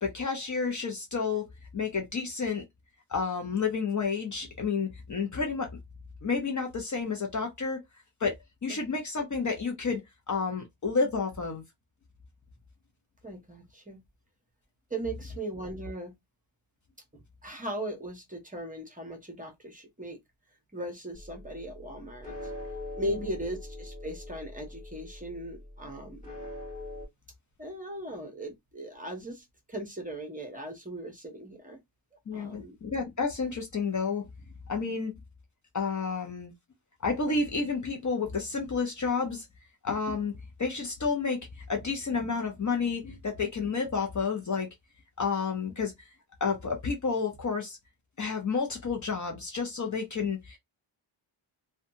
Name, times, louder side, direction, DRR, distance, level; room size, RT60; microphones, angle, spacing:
voice 1, 0.0-2.6 3.1-5.7 6.2-7.8 8.2-11.6 32.3-34.3 34.7-35.1 35.7-36.5 37.0-39.5 39.8-40.3 40.6-44.7 45.2-46.1 46.4-47.8 48.2-50.6, left 5 dB, 40° left, 0.6 m, -30 dB
voice 2, 13.2-14.0 14.9-16.1 17.1-20.2 20.7-22.4 23.0-26.2 27.6-31.8 32.3-32.8, right 1 dB, 15° right, 0.7 m, -38 dB
sound 1, 21.1-27.1, left 2 dB, 15° left, 1.5 m, -42 dB
2.6 x 2.3 x 2.6 m
wide cardioid pair, 150°, 48 cm